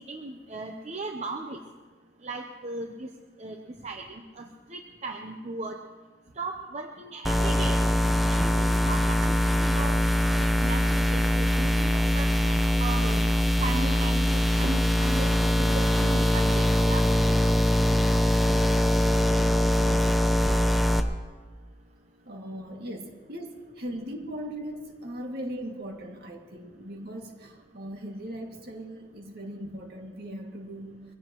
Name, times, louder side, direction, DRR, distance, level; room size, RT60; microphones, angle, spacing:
voice 1, 0.0-1.6 2.2-3.1 3.4-4.0 4.4-5.8 6.4-7.8 8.3-13.2 13.6-17.1, right 2 dB, 40° right, 3 dB, 0.8 m, -37 dB
sound 1, 7.2-21.0, left 1 dB, ahead, 0.8 m, -23 dB
voice 2, 18.4-18.8 19.6-20.2 22.3-31.0, equal, 60° right, 1 dB, 2.2 m, -39 dB
24.0 x 16.0 x 3.0 m, 1.4 s
head